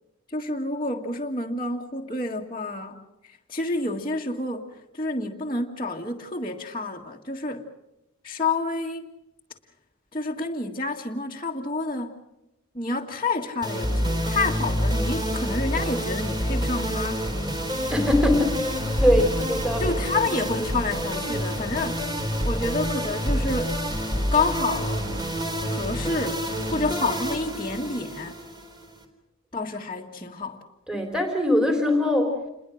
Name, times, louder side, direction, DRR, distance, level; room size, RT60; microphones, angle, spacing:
voice 1, 0.3-7.7 8.2-9.0 10.1-12.2 12.7-17.3 19.8-22.0 22.4-23.8 24.3-25.1 25.7-26.4 26.7-28.4 29.5-30.6, left 3 dB, 25° left, -4 dB, 1.7 m, -29 dB
sound 1, 13.6-29.0, equal, 20° right, 3.8 m, -27 dB
voice 2, 17.9-18.7 19.0-20.0 30.9-32.4, left 1 dB, 5° right, 4 dB, 3.6 m, -22 dB
29.0 x 22.0 x 6.4 m, 0.91 s
head